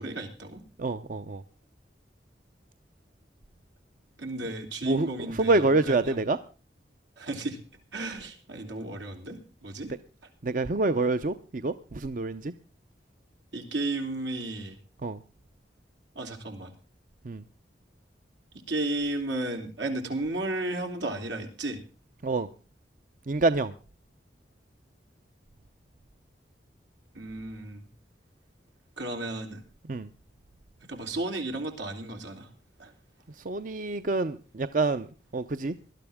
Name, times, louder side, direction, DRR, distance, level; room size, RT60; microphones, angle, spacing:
voice 1, 0.0-0.6 4.2-6.2 7.2-7.6 7.9-9.9 13.5-14.8 16.2-16.7 18.7-21.8 27.2-27.9 29.0-29.6 30.9-32.5 32.8-32.9, right 2 dB, 90° right, 3 dB, 3.4 m, -33 dB
voice 2, 0.8-1.4 4.8-5.1 5.4-6.4 10.4-12.5 15.0-15.2 17.2-17.4 22.2-22.5 23.3-23.7 29.9-30.1 33.4-35.1 35.3-35.7, right 3 dB, 45° right, 11 dB, 0.6 m, -26 dB
19.5 x 12.0 x 3.6 m, 0.35 s
head